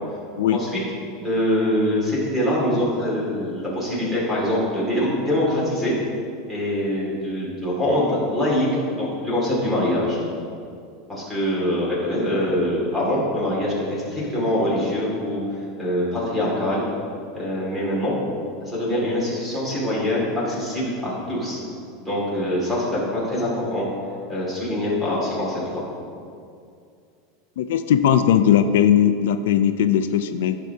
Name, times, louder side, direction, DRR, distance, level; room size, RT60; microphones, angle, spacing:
voice 1, 1.2-5.9 6.5-8.7 9.0-10.2 11.1-16.8 17.3-18.2 18.6-21.6 22.1-23.9 24.3-25.8, left 1 dB, 5° right, -6 dB, 2.1 m, -24 dB
voice 2, 27.6-30.6, left 9 dB, 85° left, 10 dB, 0.4 m, -18 dB
14.5 x 6.2 x 2.7 m, 2.4 s
supercardioid pair, 180°, 0 cm